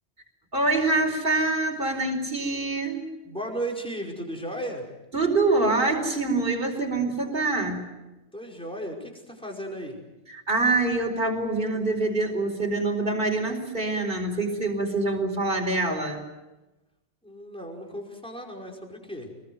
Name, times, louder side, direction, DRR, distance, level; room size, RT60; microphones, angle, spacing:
voice 1, 0.5-3.1 5.1-7.8 10.3-16.2, right 2 dB, 45° right, 1 dB, 4.8 m, -25 dB
voice 2, 3.3-4.9 8.3-10.0 17.2-19.3, right 1 dB, 5° left, -1 dB, 5.2 m, -35 dB
27.0 x 21.0 x 7.9 m, 1.0 s
omnidirectional pair, 1.2 m